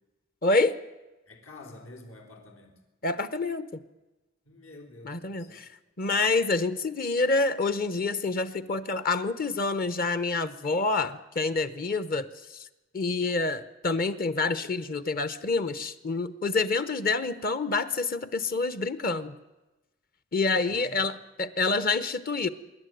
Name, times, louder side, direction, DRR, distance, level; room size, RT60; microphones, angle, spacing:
voice 1, 0.4-0.8 3.0-3.8 5.0-5.7 6.0-12.7 12.9-19.3 20.3-22.5, left 3 dB, 45° left, 14 dB, 0.9 m, -27 dB
voice 2, 1.3-2.8 4.4-5.6 20.7-20.9, left 2 dB, 80° left, 2 dB, 4.0 m, -48 dB
25.0 x 11.5 x 9.2 m, 1.1 s
head